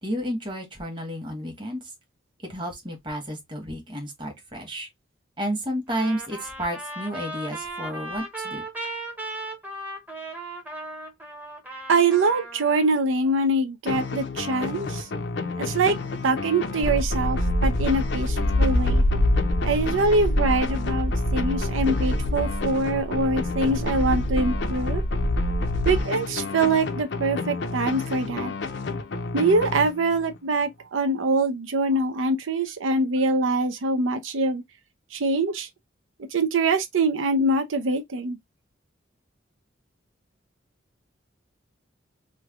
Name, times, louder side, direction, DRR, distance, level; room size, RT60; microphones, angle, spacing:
voice 1, 0.0-1.8 2.4-4.9 5.4-8.6, equal, 25° right, 1.1 m, -31 dB
Trumpet, 5.9-12.9, right 1 dB, 10° right, 0.7 m, -36 dB
voice 2, 11.9-15.1 15.6-15.9 16.2-19.0 19.6-25.0 25.9-28.5 29.3-34.6 35.1-35.7 36.3-38.4, right 2 dB, 90° right, 0.6 m, -24 dB
sound 1, 13.9-30.4, left 3 dB, 65° left, 0.5 m, -31 dB
sound 2, 16.8-26.0, left 1 dB, 85° left, 0.9 m, -25 dB
3.2 x 2.2 x 3.4 m
head